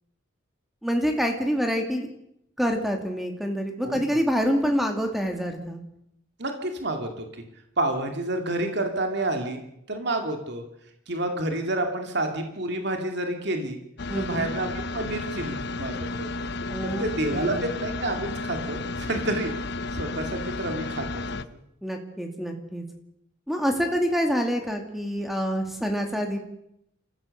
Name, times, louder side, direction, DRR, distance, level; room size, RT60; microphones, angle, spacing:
voice 1, 0.8-2.1 2.6-5.8 14.1-14.5 16.7-17.7 21.8-22.8 23.5-26.4, equal, ahead, 4 dB, 2.4 m, -27 dB
voice 2, 6.4-7.4 7.8-9.6 9.9-10.6 11.1-13.8 14.2-16.3 16.8-19.5 19.9-21.4, right 1 dB, 55° right, 4 dB, 2.4 m, -29 dB
sound 1, 14.0-21.4, left 2 dB, 55° left, 0.8 m, -32 dB
27.0 x 15.5 x 6.6 m, 0.79 s
head